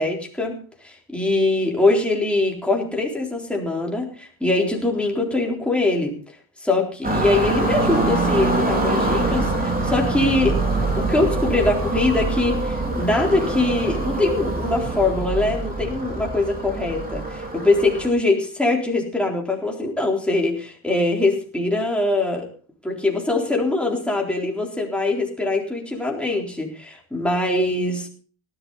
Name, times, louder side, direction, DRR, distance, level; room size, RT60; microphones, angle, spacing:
voice 1, 0.0-6.2 6.6-10.6 11.0-22.5 22.8-28.1, left 2 dB, ahead, -1 dB, 3.8 m, -22 dB
sound 1, 7.0-18.1, right 2 dB, 20° right, 3.2 m, -24 dB
18.0 x 12.0 x 4.1 m, 0.40 s
cardioid pair, 160°, 48 cm